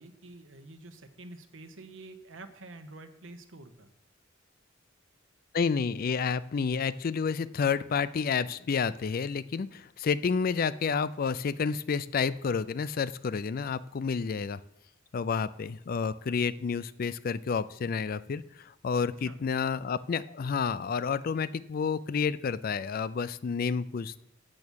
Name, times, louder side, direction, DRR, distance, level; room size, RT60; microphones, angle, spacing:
voice 1, 0.0-3.9 19.2-19.4, right 2 dB, 75° right, 9 dB, 1.0 m, -48 dB
voice 2, 5.5-14.6 15.1-24.2, left 5 dB, 45° left, 17 dB, 0.4 m, -30 dB
8.7 x 7.0 x 6.3 m, 0.84 s
head